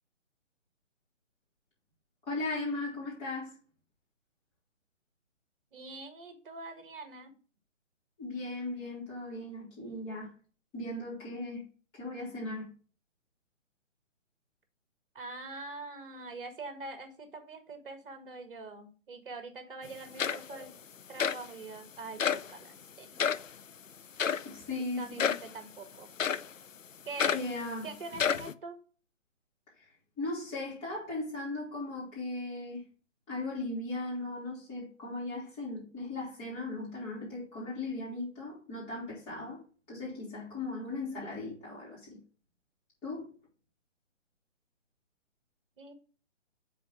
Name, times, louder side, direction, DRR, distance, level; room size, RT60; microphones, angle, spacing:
voice 1, 2.2-3.5 8.2-10.3 10.7-11.7 11.9-12.7 24.3-25.3 27.3-27.9 30.2-32.9 33.3-39.6 39.9-42.2 43.0-43.3, left 2 dB, 15° left, 3.3 m, -37 dB
voice 2, 5.7-7.3 15.1-20.7 21.1-23.3 25.0-26.1 27.0-27.4 27.8-28.8 45.8-45.9, right 3 dB, 45° right, 1.7 m, -44 dB
sound 1, 19.8-19.9 20.2-20.7 21.2-21.4 22.2-22.5 23.2-23.5 24.2-24.5 25.2-25.5 26.2-26.5 27.2-27.5 28.1-28.5, left 7 dB, 80° left, 0.6 m, -30 dB
6.2 x 4.1 x 6.0 m
figure-of-eight pair, 140°, 38 cm